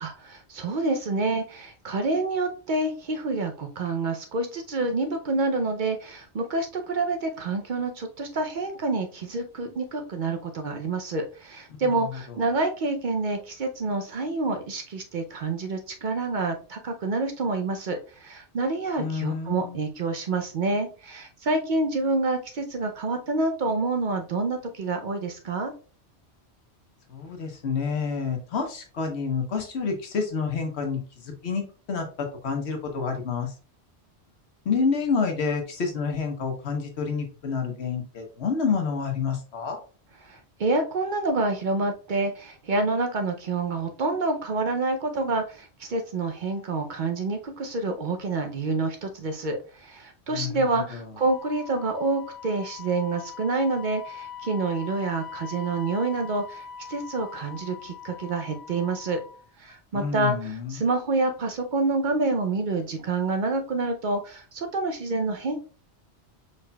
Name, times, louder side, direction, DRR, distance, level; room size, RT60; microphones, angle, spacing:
voice 1, 0.0-25.7 40.2-59.2 59.6-65.6, right 3 dB, 55° right, 5 dB, 0.7 m, -28 dB
voice 2, 11.8-12.2 19.0-19.8 27.1-33.5 34.6-39.8 50.3-51.1 59.9-60.8, left 5 dB, 80° left, 4 dB, 1.2 m, -29 dB
Wind instrument woodwind instrument, 51.2-59.4, left 7 dB, 45° left, 0.8 m, -42 dB
4.8 x 4.1 x 2.2 m, 0.37 s
omnidirectional pair, 1.1 m